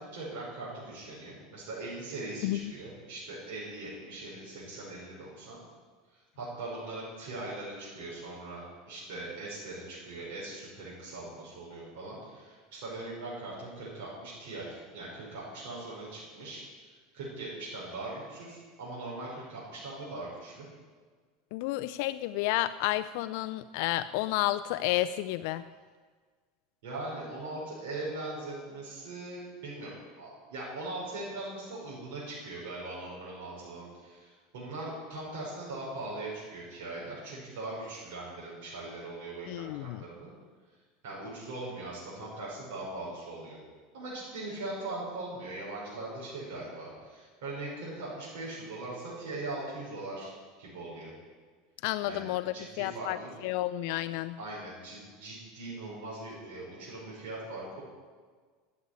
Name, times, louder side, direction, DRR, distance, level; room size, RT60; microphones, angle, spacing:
voice 1, 0.1-5.6 6.1-16.6 17.1-20.7 26.8-29.9 30.2-40.3 41.0-43.6 43.9-50.3 50.6-51.1 52.0-53.3 54.4-57.8, right 2 dB, 75° right, -6 dB, 5.9 m, -40 dB
voice 2, 21.5-25.6 39.5-40.0 51.8-53.2 53.4-54.4, left 15 dB, 60° left, 12 dB, 0.4 m, -31 dB
11.5 x 9.6 x 9.7 m, 1.5 s
supercardioid pair, 160°, 0 cm